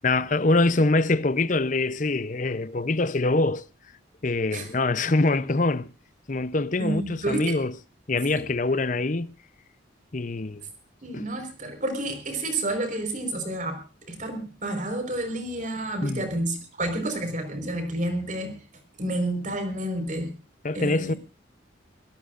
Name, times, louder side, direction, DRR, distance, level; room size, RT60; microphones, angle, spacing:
voice 1, 0.0-3.6 4.2-5.9 6.3-7.7 8.1-9.3 10.1-10.6 11.1-11.2 16.0-16.3 20.6-21.1, left 2 dB, 40° left, 0.7 m, -24 dB
voice 2, 6.8-7.6 8.3-8.4 11.0-13.8 14.1-18.6 19.0-20.3 20.7-21.2, right 1 dB, 40° right, 4.6 m, -30 dB
24.5 x 17.5 x 2.5 m
head